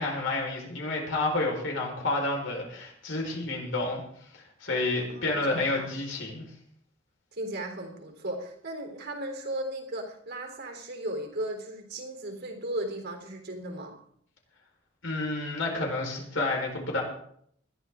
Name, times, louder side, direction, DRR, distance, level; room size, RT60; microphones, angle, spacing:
voice 1, 0.0-4.0 4.3-6.4 15.0-17.0, left 2 dB, 70° left, 0 dB, 4.5 m, -30 dB
voice 2, 4.9-5.9 7.3-13.9, right 1 dB, 55° right, 4 dB, 3.5 m, -36 dB
20.0 x 13.0 x 3.7 m, 0.66 s
head